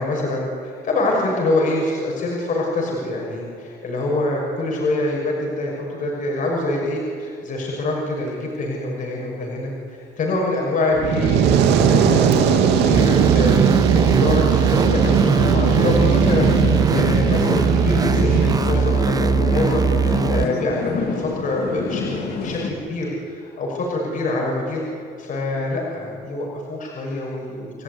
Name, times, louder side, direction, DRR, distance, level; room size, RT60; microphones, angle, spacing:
voice 1, 0.0-24.8 25.2-27.8, left 2 dB, 50° left, -2 dB, 6.2 m, -25 dB
Fire, 10.9-18.6, right 7 dB, 85° right, 2.3 m, -18 dB
sound 1, 12.9-20.4, right 6 dB, 20° right, 0.5 m, -21 dB
sound 2, 14.8-22.7, left 5 dB, 70° left, 3.7 m, -27 dB
29.0 x 14.0 x 9.6 m, 2.2 s
cardioid pair, 110°, 17 cm